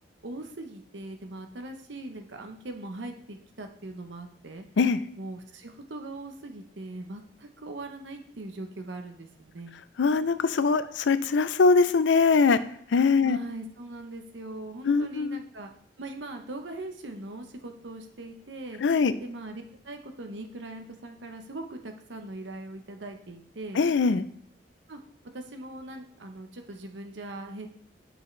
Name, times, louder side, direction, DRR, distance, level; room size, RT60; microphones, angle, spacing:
voice 1, 0.2-4.6 5.2-9.7 13.2-15.7 16.0-18.8 19.2-23.8 24.9-25.0 25.3-27.7, right 2 dB, 85° right, 5 dB, 0.9 m, -40 dB
voice 2, 10.0-12.6 12.9-13.4 14.8-15.4 18.8-19.1 23.8-24.2, left 4 dB, 90° left, 13 dB, 0.5 m, -22 dB
8.3 x 5.5 x 3.2 m, 0.68 s
head